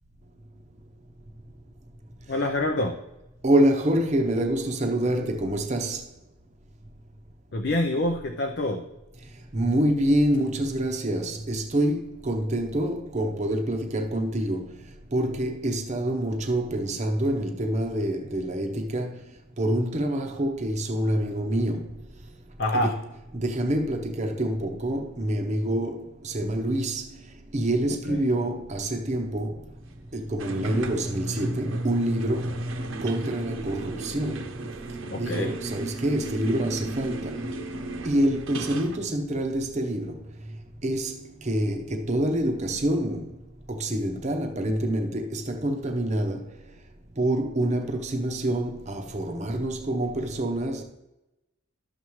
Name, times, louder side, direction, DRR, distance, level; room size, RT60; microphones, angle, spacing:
voice 1, 2.3-3.0 7.5-8.9 22.6-22.9 35.1-35.5, left 1 dB, 50° left, 0.6 m, -26 dB
voice 2, 3.4-6.0 9.5-14.8 15.1-19.2 19.6-21.9 22.7-23.0 23.3-27.0 27.5-29.6 30.1-32.6 33.0-34.4 35.2-37.4 38.0-40.2 40.8-43.3 43.7-46.4 47.2-50.8, right 1 dB, 30° right, 0.8 m, -26 dB
sound 1, 30.4-39.0, right 1 dB, 70° right, 0.9 m, -34 dB
12.0 x 7.1 x 3.1 m
head